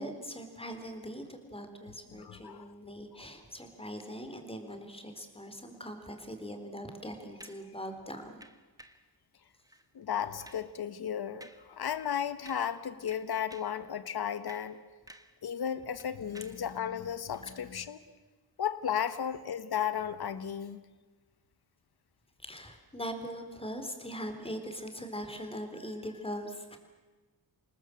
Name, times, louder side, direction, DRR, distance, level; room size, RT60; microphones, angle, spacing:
voice 1, 0.0-8.4 22.4-26.8, equal, 15° left, 6 dB, 3.8 m, -41 dB
voice 2, 2.1-2.7 9.9-14.8 15.4-18.0 18.6-20.8, left 8 dB, 80° left, 13 dB, 1.3 m, -34 dB
sound 1, 7.4-7.7 8.4-9.1 9.6-9.9 10.2-10.7 11.4-11.7 12.0-12.1 12.5-12.8 13.1-13.8 14.3-15.4 15.7-16.7 17.3-17.5, right 1 dB, 10° right, 1.5 m, -54 dB
27.5 x 19.0 x 7.8 m, 1.2 s
wide cardioid pair, 85°, 38 cm